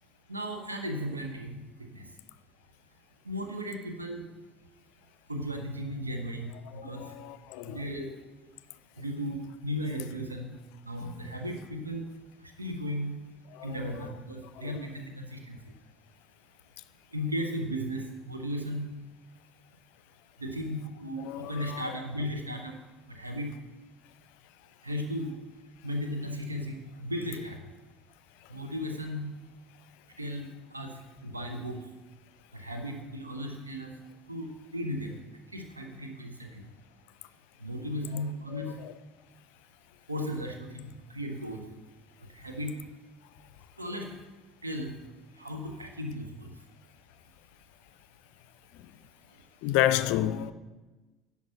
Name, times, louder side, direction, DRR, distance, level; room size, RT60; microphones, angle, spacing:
voice 1, 0.3-1.6 1.9-2.0 3.2-4.3 5.3-7.0 7.7-8.1 9.0-10.5 10.9-12.1 12.6-13.2 13.6-15.6 17.1-19.0 20.4-22.7 23.1-23.6 24.8-25.3 25.8-27.6 28.5-29.3 30.2-30.5 30.7-30.9 31.2-31.8 32.5-33.9 34.3-35.2 35.5-36.7 37.6-38.7 40.1-41.6 42.3-42.8 43.8-44.1 44.6-44.9 45.4-46.5, equal, 85° right, 0.9 m, -35 dB
voice 2, 6.7-7.8 13.5-14.1 14.6-14.7 21.2-21.8 38.5-38.9 48.7-48.9 49.6-50.5, left 13 dB, 60° left, 0.4 m, -31 dB
10.5 x 5.8 x 5.9 m
figure-of-eight pair, 60°, 0 cm